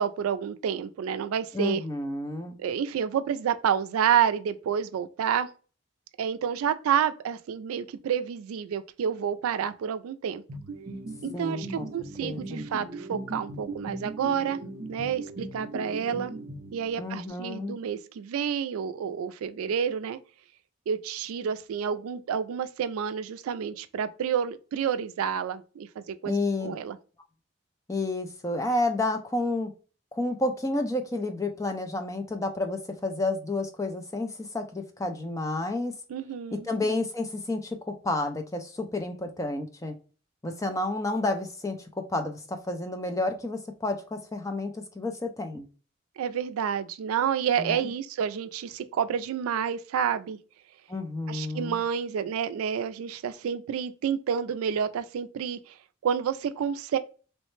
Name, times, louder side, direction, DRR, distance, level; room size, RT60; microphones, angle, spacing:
voice 1, 0.0-1.8 2.6-5.5 6.2-10.4 11.2-14.6 14.9-16.3 16.7-20.2 20.9-27.0 36.1-36.7 46.2-50.4 51.3-55.7 56.0-57.0, right 8 dB, 90° right, 0.3 m, -29 dB
voice 2, 1.5-2.6 11.3-11.9 12.2-12.7 17.0-17.8 26.2-26.7 27.9-29.7 30.1-35.9 36.6-39.9 40.4-45.7 47.6-47.8 50.9-51.8, left 2 dB, 15° left, 0.4 m, -30 dB
sound 1, 10.5-17.2, right 2 dB, 45° right, 0.6 m, -39 dB
3.1 x 2.1 x 3.0 m
head